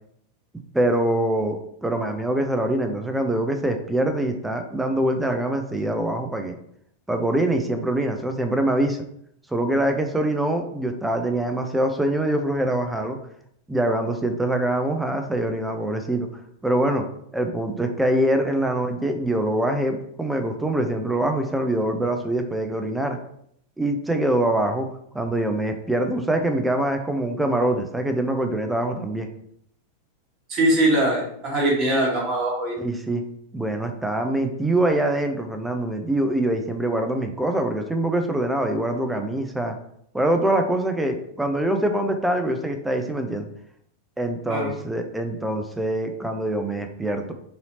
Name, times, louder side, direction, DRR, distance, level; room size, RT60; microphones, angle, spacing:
voice 1, 0.7-6.5 7.1-9.0 9.5-13.2 13.7-16.3 16.6-17.0 17.3-23.2 23.8-24.9 25.1-29.3 32.8-33.2 33.5-39.8 40.1-43.5 44.2-47.3, right 1 dB, 5° right, 6 dB, 0.5 m, -24 dB
voice 2, 30.5-32.7 44.5-44.7, right 1 dB, 40° right, -3 dB, 1.2 m, -21 dB
4.0 x 2.8 x 2.8 m, 0.70 s
figure-of-eight pair, 90°, 0 cm